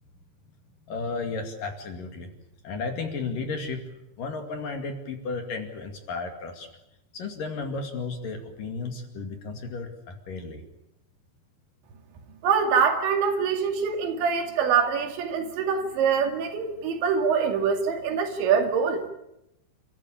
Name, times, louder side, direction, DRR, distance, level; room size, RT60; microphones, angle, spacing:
voice 1, 0.9-2.3 2.6-3.8 4.2-6.7 7.1-10.6, left 4 dB, 50° left, 5 dB, 3.6 m, -33 dB
voice 2, 12.4-19.0, right 6 dB, 70° right, 5 dB, 4.7 m, -24 dB
30.0 x 14.0 x 10.0 m, 0.86 s
omnidirectional pair, 5.4 m